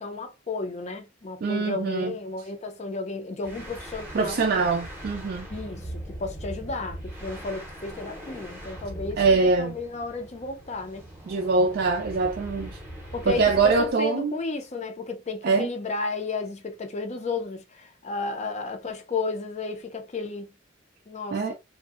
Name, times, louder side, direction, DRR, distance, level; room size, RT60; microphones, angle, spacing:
voice 1, 0.0-4.4 5.5-5.8 6.2-11.0 13.1-20.5 21.1-21.5, left 3 dB, 35° left, 0.5 m, -33 dB
voice 2, 1.4-2.1 4.1-5.5 9.2-9.8 11.3-12.7 13.3-14.3 15.4-15.7 21.3-21.5, right 4 dB, 50° right, 0.3 m, -23 dB
sound 1, 3.4-13.9, equal, 10° right, 0.7 m, -40 dB
2.6 x 2.1 x 2.3 m
head